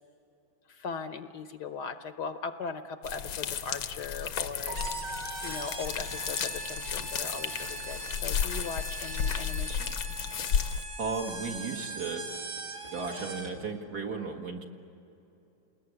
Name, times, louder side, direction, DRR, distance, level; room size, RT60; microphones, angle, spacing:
voice 1, 0.7-5.0 5.4-9.9, left 5 dB, 65° left, 9 dB, 1.2 m, -39 dB
sound 1, 3.0-10.8, left 7 dB, 85° left, 1.8 m, -33 dB
Keyboard (musical), 4.7-7.1, right 1 dB, 70° right, 4.4 m, -43 dB
sound 2, 4.8-13.7, right 3 dB, 35° right, 2.1 m, -41 dB
voice 2, 11.0-12.3 12.9-14.7, right 4 dB, 50° right, 3 dB, 2.2 m, -35 dB
29.0 x 20.5 x 9.6 m, 2.9 s
omnidirectional pair, 2.2 m